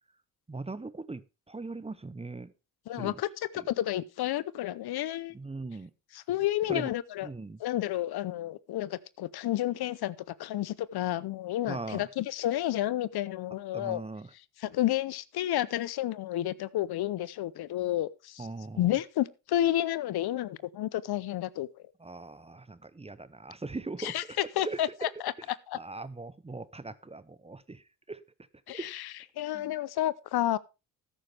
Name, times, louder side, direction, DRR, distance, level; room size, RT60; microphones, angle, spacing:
voice 1, 0.5-2.5 2.9-3.2 3.6-3.7 5.3-5.9 6.7-6.9 7.2-7.6 11.7-12.1 13.7-14.3 18.4-19.0 22.0-25.1 25.7-28.2 28.7-28.9 29.5-29.7, right 3 dB, 15° right, 0.8 m, -40 dB
voice 2, 2.9-3.3 3.5-5.3 6.1-7.3 7.6-14.0 14.6-18.5 18.8-21.7 24.0-24.2 24.6-25.3 25.7-25.8 28.7-29.1 29.4-30.6, left 13 dB, 70° left, 0.7 m, -31 dB
13.0 x 10.0 x 3.3 m
supercardioid pair, 65°, 39 cm